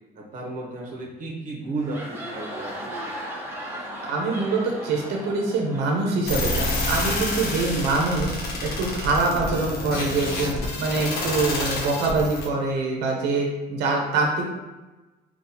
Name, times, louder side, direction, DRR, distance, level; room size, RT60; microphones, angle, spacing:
voice 1, 0.2-3.1, right 2 dB, 50° right, -2 dB, 0.8 m, -34 dB
sound 1, 1.6-7.2, equal, 15° right, 0.7 m, -37 dB
voice 2, 4.0-14.4, right 3 dB, 80° right, 0 dB, 0.7 m, -24 dB
sound 2, 6.3-12.5, left 2 dB, 65° left, 0.9 m, -28 dB
3.8 x 2.3 x 2.8 m, 1.1 s
cardioid pair, 110°, 17 cm